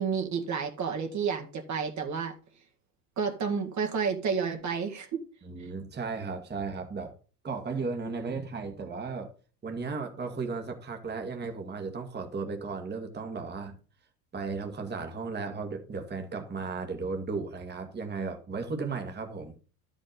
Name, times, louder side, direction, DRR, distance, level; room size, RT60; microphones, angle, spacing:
voice 1, 0.0-2.3 3.2-5.2, right 6 dB, 35° right, 2.0 m, -30 dB
voice 2, 5.4-7.2 7.4-9.3 9.6-13.8 14.3-19.5, right 4 dB, 20° right, 1.9 m, -35 dB
12.0 x 5.6 x 5.2 m
hypercardioid pair, 80°, 47 cm